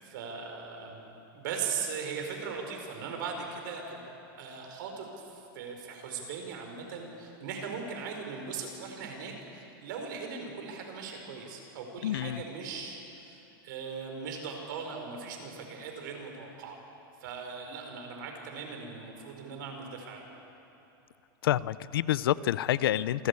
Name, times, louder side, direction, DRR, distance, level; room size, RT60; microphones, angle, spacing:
voice 1, 0.0-4.0 4.4-5.1 5.5-16.8 17.2-20.2, right 5 dB, 60° right, 3 dB, 4.8 m, -39 dB
voice 2, 12.0-12.4 21.4-23.3, left 12 dB, 90° left, 18 dB, 0.6 m, -28 dB
27.5 x 15.0 x 8.4 m, 2.9 s
supercardioid pair, 165°, 12 cm